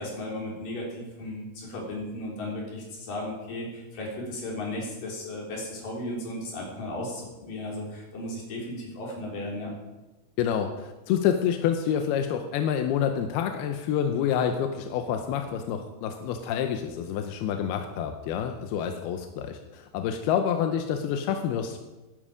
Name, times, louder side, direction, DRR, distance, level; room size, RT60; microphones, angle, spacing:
voice 1, 0.0-9.7, left 1 dB, 50° left, -3 dB, 5.0 m, -35 dB
voice 2, 10.4-21.8, left 8 dB, 75° left, 6 dB, 2.4 m, -28 dB
16.5 x 11.0 x 5.1 m, 1.1 s
omnidirectional pair, 5.4 m